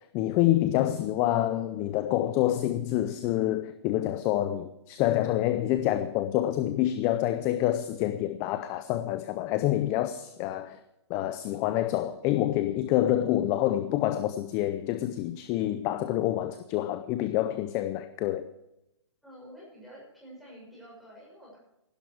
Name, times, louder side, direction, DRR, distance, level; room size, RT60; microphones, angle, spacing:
voice 1, 0.1-10.8 11.1-18.5, left 13 dB, 20° left, 0.5 m, -27 dB
voice 2, 19.2-21.6, equal, ahead, 6.7 m, -49 dB
16.0 x 12.0 x 4.6 m
hypercardioid pair, 155°, 15 cm